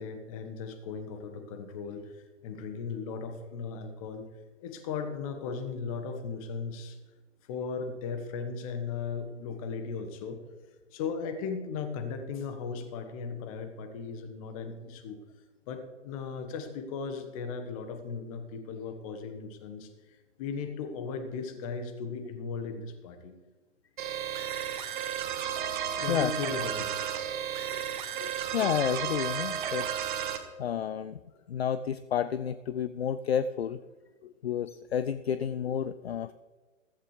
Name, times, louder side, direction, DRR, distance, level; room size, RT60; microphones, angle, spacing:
voice 1, 0.0-4.3 4.6-7.0 7.5-10.4 10.9-15.2 15.7-19.9 20.4-23.3 25.8-27.0 27.6-27.7, left 5 dB, 30° left, 8 dB, 1.4 m, -37 dB
sound 1, 24.0-30.4, right 9 dB, 40° right, 1.6 m, -33 dB
voice 2, 28.2-29.9 30.6-31.2 31.5-33.8 34.2-36.3, left 8 dB, 55° left, 13 dB, 0.5 m, -31 dB
15.0 x 15.0 x 3.3 m, 1.3 s
figure-of-eight pair, 125°, 37 cm